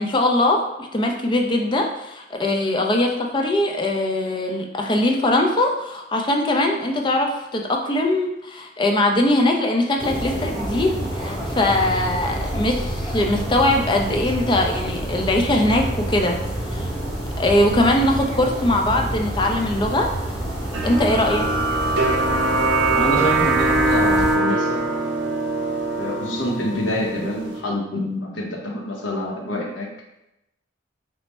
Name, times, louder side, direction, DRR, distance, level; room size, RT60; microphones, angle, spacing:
voice 1, 0.0-16.4 16.7-16.8 17.4-20.1 20.8-21.4, left 1 dB, 25° left, 2 dB, 0.4 m, -21 dB
sound 1, 10.0-24.4, right 1 dB, ahead, 0.8 m, -28 dB
sound 2, 20.7-27.6, right 2 dB, 75° right, 0.5 m, -22 dB
voice 2, 22.9-24.9 26.0-29.9, left 1 dB, 85° left, -2 dB, 0.8 m, -26 dB
3.2 x 2.1 x 4.1 m, 0.88 s
head